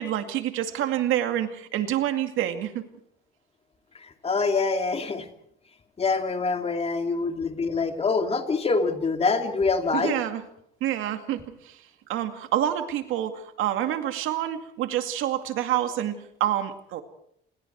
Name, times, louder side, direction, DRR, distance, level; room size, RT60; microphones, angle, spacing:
voice 1, 0.0-2.8 9.9-10.4 10.8-11.8 12.1-17.0, right 11 dB, 75° right, 7 dB, 2.3 m, -27 dB
voice 2, 3.9-5.3 6.0-10.2, left 4 dB, 30° left, 5 dB, 2.8 m, -25 dB
28.5 x 21.5 x 4.7 m, 0.71 s
cardioid pair, 125°, 21 cm